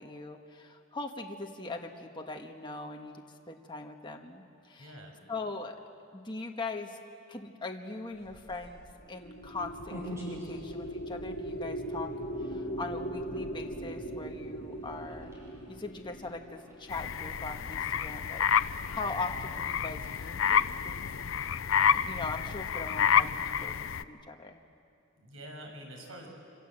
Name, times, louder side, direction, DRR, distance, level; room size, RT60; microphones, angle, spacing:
voice 1, 0.0-3.1 3.5-5.0 5.3-5.8 6.1-7.0 7.3-8.8 9.1-12.1 12.4-15.3 15.7-18.4 18.7-21.0 21.9-23.7 24.0-24.6, left 3 dB, 25° left, 2 dB, 1.4 m, -40 dB
voice 2, 4.8-5.2 17.8-18.2 25.2-26.3, equal, 80° right, 2 dB, 6.3 m, -47 dB
sound 1, 8.1-22.6, equal, 15° right, 7.2 m, -51 dB
sound 2, 9.0-17.5, right 1 dB, 50° left, 3.7 m, -39 dB
sound 3, 16.9-24.0, left 7 dB, 70° left, 0.6 m, -29 dB
26.5 x 26.0 x 7.7 m, 2.5 s
head